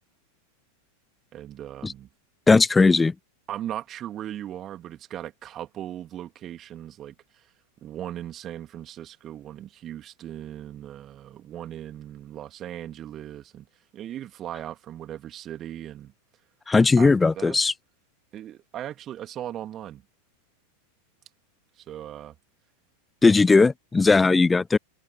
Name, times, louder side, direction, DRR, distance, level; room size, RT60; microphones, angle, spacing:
voice 1, 1.3-2.1 3.5-7.1 7.8-13.7 13.9-16.1 17.0-17.6 18.3-20.0 21.8-22.3, right 11 dB, 30° right, 3.2 m, -38 dB
voice 2, 2.5-3.1 16.7-17.7 23.2-24.8, left 4 dB, 10° left, 0.3 m, -18 dB
figure-of-eight pair, 90°, 0 cm